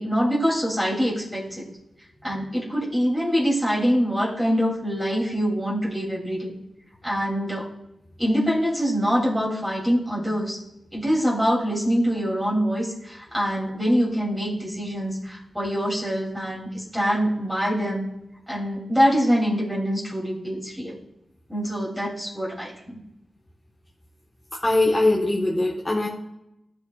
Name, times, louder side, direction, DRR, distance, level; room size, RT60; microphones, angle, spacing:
voice 1, 0.0-1.7 2.2-6.5 7.0-7.7 8.2-10.6 10.9-18.0 18.5-21.0 21.5-23.0, equal, 10° right, -5 dB, 2.7 m, -24 dB
voice 2, 24.6-26.1, left 2 dB, 20° left, -4 dB, 1.2 m, -21 dB
14.5 x 5.2 x 2.3 m, 0.85 s
cardioid pair, 70°, 0 cm